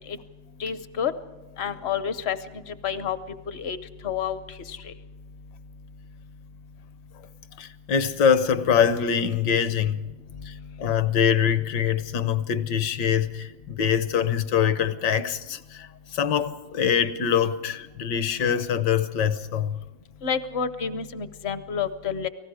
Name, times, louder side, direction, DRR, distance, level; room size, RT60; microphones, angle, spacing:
voice 1, 0.6-1.1 1.6-2.4 2.7-3.2 3.5-3.8 4.0-4.4 4.7-4.9 20.2-22.3, left 7 dB, 50° left, 0.7 m, -29 dB
voice 2, 7.6-10.0 10.5-19.8, left 8 dB, 70° left, 1.4 m, -24 dB
29.5 x 19.0 x 4.9 m
omnidirectional pair, 2.0 m